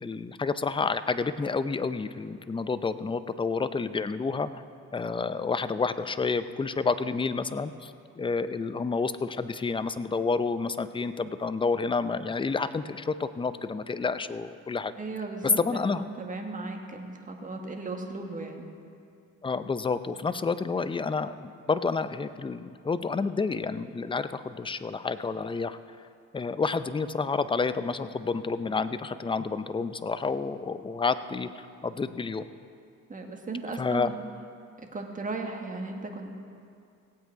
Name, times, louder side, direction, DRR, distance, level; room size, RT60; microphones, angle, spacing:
voice 1, 0.0-4.5 4.9-14.9 15.6-16.0 19.4-25.8 26.3-32.5 33.8-34.1, left 4 dB, 15° left, 12 dB, 0.5 m, -29 dB
voice 2, 15.0-18.6 33.1-34.2 34.8-36.3, right 3 dB, 25° right, 2 dB, 1.5 m, -36 dB
18.0 x 8.0 x 4.7 m, 2.4 s
cardioid pair, 90°, 30 cm